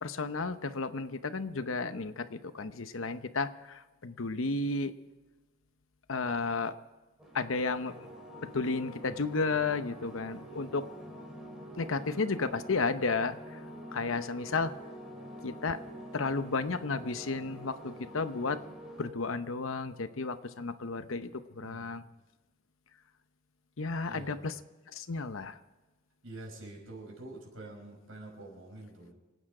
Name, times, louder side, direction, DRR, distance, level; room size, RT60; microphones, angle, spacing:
voice 1, 0.0-4.9 6.1-6.7 7.3-7.9 8.4-10.8 11.8-13.4 13.9-14.7 15.4-15.8 16.1-18.6 19.0-22.0 23.8-24.5 24.9-25.6, left 4 dB, 75° left, 11 dB, 0.9 m, -33 dB
sound 1, 7.2-19.1, equal, 5° right, 3.4 m, -47 dB
voice 2, 21.6-21.9 24.0-24.4 26.2-29.1, right 2 dB, 90° right, 0 dB, 5.5 m, -46 dB
26.5 x 9.1 x 4.9 m, 1.2 s
head